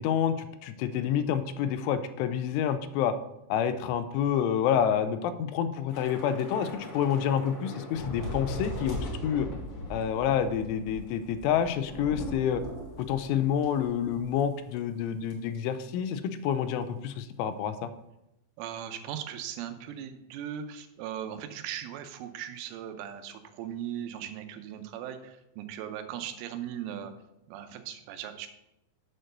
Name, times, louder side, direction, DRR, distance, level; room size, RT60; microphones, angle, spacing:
voice 1, 0.0-3.2 3.5-9.5 9.9-12.6 13.0-17.9, left 8 dB, 85° left, 10 dB, 3.0 m, -28 dB
Thunder / Rain, 5.9-14.5 14.8-14.9 15.3-15.6, left 1 dB, 70° left, 1.3 m, -39 dB
voice 2, 18.6-27.1 27.5-28.5, right 10 dB, 90° right, 8 dB, 3.2 m, -38 dB
7.6 x 4.5 x 6.5 m, 0.88 s
omnidirectional pair, 5.6 m